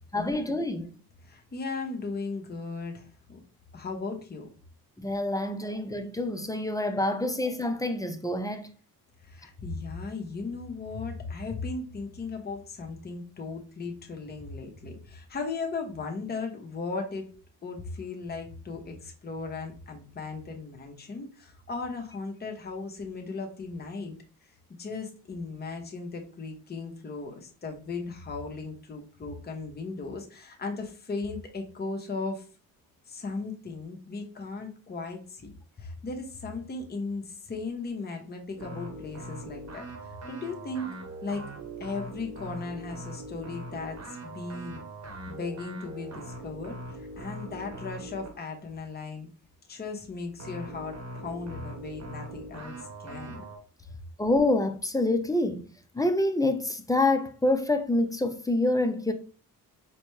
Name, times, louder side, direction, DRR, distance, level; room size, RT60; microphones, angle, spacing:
voice 1, 0.1-1.0 5.0-8.7 54.2-55.7 55.9-59.1, left 2 dB, 10° left, 0.4 m, -27 dB
voice 2, 1.2-3.4 3.7-4.5 9.2-17.3 17.6-24.1 24.8-32.4 33.1-35.5 35.8-40.9 41.2-41.5 41.8-44.8 45.3-49.3 49.7-53.4, left 3 dB, 25° left, 0.9 m, -37 dB
sound 1, 38.6-48.4 50.4-53.6, right 1 dB, 45° right, 1.0 m, -41 dB
4.2 x 2.1 x 3.1 m
cardioid pair, 75°, 38 cm